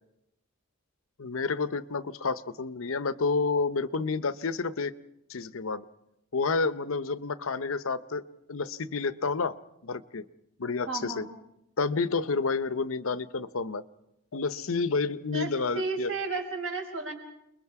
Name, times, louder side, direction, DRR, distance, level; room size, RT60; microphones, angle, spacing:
voice 1, 1.2-4.9 5.3-5.8 6.3-8.2 8.5-9.6 9.8-10.2 10.6-11.2 11.8-13.8 14.3-16.1, left 4 dB, 70° left, 14 dB, 0.8 m, -29 dB
voice 2, 10.9-11.3 15.3-17.1, right 3 dB, 65° right, 2 dB, 5.2 m, -33 dB
29.0 x 21.5 x 4.8 m, 0.85 s
head